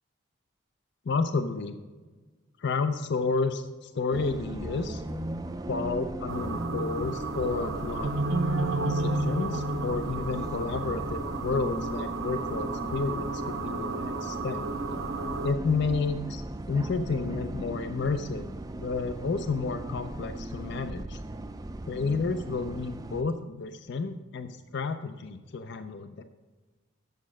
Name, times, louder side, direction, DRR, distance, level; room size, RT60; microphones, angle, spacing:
voice 1, 1.1-1.8 2.6-5.0 5.7-8.1 8.8-14.6 15.4-18.5 18.8-21.2 21.9-26.2, left 4 dB, 55° left, 10 dB, 0.4 m, -31 dB
Bus, 4.1-23.2, right 1 dB, 15° right, 0.3 m, -37 dB
sound 1, 6.3-15.5, right 2 dB, 75° right, 0.8 m, -32 dB
7.3 x 6.6 x 6.3 m, 1.3 s
head